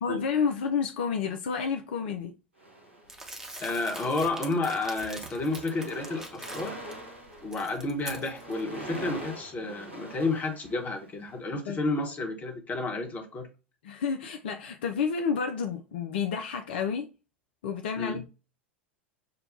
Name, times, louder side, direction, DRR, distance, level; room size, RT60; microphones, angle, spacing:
voice 1, 0.0-2.3 11.7-11.8 13.8-17.1 17.6-18.3, left 6 dB, 60° left, 0.4 m, -30 dB
sound 1, 2.6-3.6 4.3-4.5 4.8-11.3, right 1 dB, 85° right, 1.3 m, -44 dB
Crumpling crinkling, 3.1-6.9 7.3-8.6, right 2 dB, 10° right, 0.9 m, -43 dB
voice 2, 3.6-6.8 7.4-13.5 18.0-18.2, left 2 dB, 25° left, 1.1 m, -31 dB
6.6 x 2.2 x 2.5 m
figure-of-eight pair, 85°, 6 cm